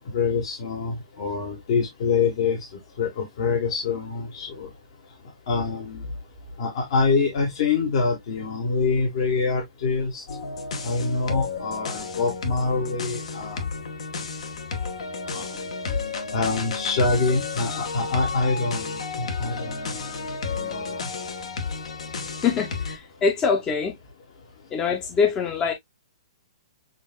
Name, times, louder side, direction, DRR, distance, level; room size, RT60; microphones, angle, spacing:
voice 1, 0.1-2.6 3.0-4.7 5.5-6.0 6.6-10.2 10.8-13.6 15.3-15.5 16.3-21.0, left 4 dB, 50° left, 1.3 m, -25 dB
sound 1, 10.3-23.0, left 4 dB, 70° left, 1.2 m, -32 dB
voice 2, 22.4-24.0 24.7-25.7, left 5 dB, 20° left, 0.7 m, -24 dB
6.7 x 2.6 x 2.2 m
hypercardioid pair, 145°, 4 cm